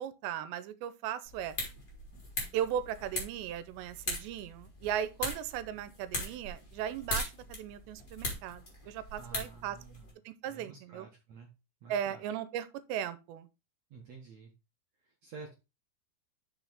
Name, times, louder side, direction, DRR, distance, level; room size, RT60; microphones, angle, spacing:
voice 1, 0.0-1.6 2.5-9.8 10.3-11.1 11.9-13.5, right 10 dB, 85° right, 2.9 m, -37 dB
sound 1, 1.2-10.1, left 1 dB, 25° left, 3.6 m, -40 dB
voice 2, 9.2-10.1 10.5-11.5 11.8-12.2 13.9-14.5 15.2-15.5, right 4 dB, 65° right, 1.8 m, -50 dB
7.1 x 6.5 x 4.0 m
omnidirectional pair, 5.0 m